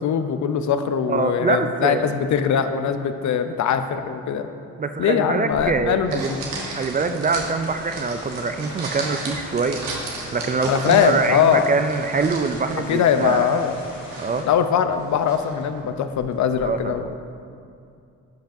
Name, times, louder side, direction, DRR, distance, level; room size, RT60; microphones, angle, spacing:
voice 1, 0.0-4.5 5.0-6.4 10.7-11.7 12.9-13.7 14.4-17.1, left 8 dB, 65° left, 9 dB, 0.5 m, -21 dB
voice 2, 1.1-2.1 4.8-6.3 6.7-9.8 10.3-13.6 14.2-14.5 16.6-16.9, right 4 dB, 25° right, 8 dB, 0.4 m, -24 dB
sound 1, 5.5-16.9, right 2 dB, 85° right, 1.2 m, -36 dB
sound 2, 7.6-14.4, left 1 dB, 90° left, 1.6 m, -41 dB
11.5 x 5.2 x 2.6 m, 2.4 s
cardioid pair, 65°, 32 cm